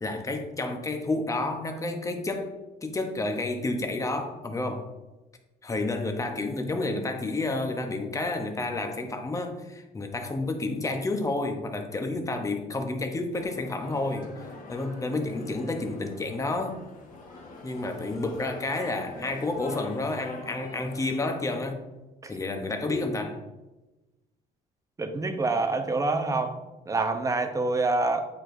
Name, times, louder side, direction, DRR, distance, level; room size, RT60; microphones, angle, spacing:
voice 1, 0.0-2.5 2.8-4.9 5.6-14.3 14.7-16.8 17.6-21.8 22.3-23.4, left 2 dB, 20° left, 5 dB, 0.8 m, -30 dB
sound 1, 13.3-21.4, left 2 dB, 55° left, 1.3 m, -45 dB
voice 2, 25.0-26.6 26.9-28.3, right 3 dB, 20° right, 6 dB, 0.7 m, -26 dB
8.8 x 4.5 x 2.6 m, 1.1 s
cardioid pair, 110°, 17 cm